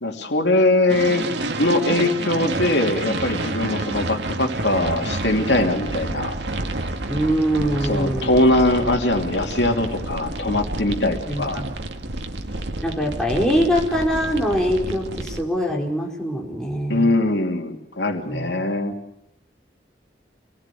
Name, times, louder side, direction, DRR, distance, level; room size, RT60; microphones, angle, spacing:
voice 1, 0.0-1.3 1.6-6.3 7.8-11.6 16.9-18.9, left 2 dB, 90° left, 3 dB, 2.8 m, -21 dB
sound 1, 0.9-15.4, right 2 dB, 90° right, 1.8 m, -29 dB
voice 2, 7.1-8.4 11.3-11.8 12.8-17.1 18.3-18.5, equal, 5° left, -2 dB, 4.7 m, -23 dB
26.5 x 19.0 x 8.4 m, 0.84 s
head